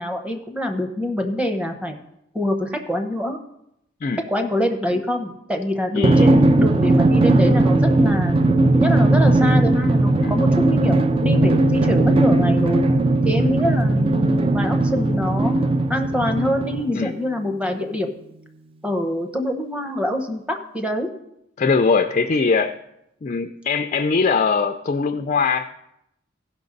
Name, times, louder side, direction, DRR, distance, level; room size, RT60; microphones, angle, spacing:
voice 1, 0.0-2.0 2.3-3.4 4.1-8.4 8.7-12.9 13.2-18.1 18.8-21.1, left 1 dB, 5° right, 4 dB, 0.9 m, -25 dB
voice 2, 5.9-6.4 10.2-10.4 16.9-17.1 21.6-22.8 23.2-25.7, left 4 dB, 35° left, 7 dB, 0.4 m, -21 dB
Drum, 6.0-17.1, right 2 dB, 25° right, 0.4 m, -18 dB
Piano, 11.2-17.9, right 1 dB, 70° right, 0.9 m, -30 dB
16.0 x 5.8 x 4.0 m, 0.81 s
head